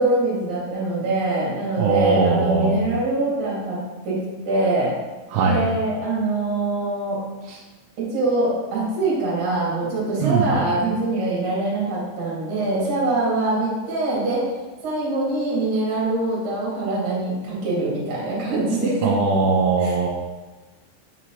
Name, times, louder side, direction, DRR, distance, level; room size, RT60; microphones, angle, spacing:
voice 1, 0.0-5.0 5.4-7.3 8.0-14.5 14.8-19.1 19.8-19.9, right 2 dB, 45° right, -7 dB, 3.1 m, -24 dB
voice 2, 1.8-2.8 5.3-5.7 7.5-7.6 10.2-10.5 19.0-20.1, right 4 dB, 85° right, -2 dB, 3.2 m, -20 dB
6.6 x 5.9 x 3.1 m, 1.2 s
omnidirectional pair, 5.7 m